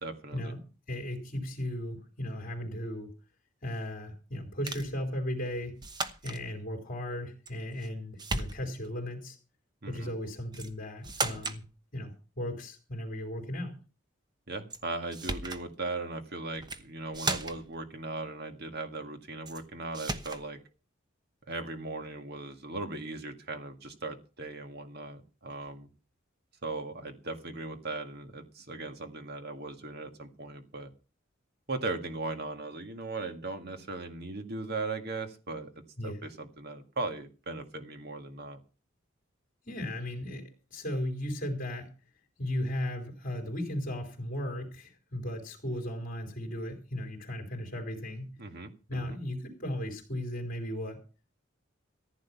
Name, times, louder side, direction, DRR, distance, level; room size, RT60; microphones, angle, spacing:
voice 1, 0.0-0.5 9.8-10.1 11.2-11.5 14.5-20.6 21.5-25.9 26.6-30.9 31.7-35.7 36.0-38.6 48.4-49.2, right 3 dB, 55° right, 7 dB, 1.9 m, -38 dB
voice 2, 0.9-3.1 3.6-5.7 6.2-9.4 9.9-11.6 11.9-13.7 36.0-36.2 39.6-41.9 42.4-48.3 48.9-51.0, left 1 dB, 45° left, 1 dB, 3.7 m, -36 dB
sound 1, 4.7-4.9 5.8-6.4 7.5-7.9 8.2-8.9 10.5-10.7 11.0-11.6 14.7-14.8 15.1-15.6 16.5-16.8 17.1-17.7 19.5-19.6 19.9-20.4, right 3 dB, 20° right, 1.0 m, -35 dB
15.0 x 9.5 x 5.8 m, 0.36 s
head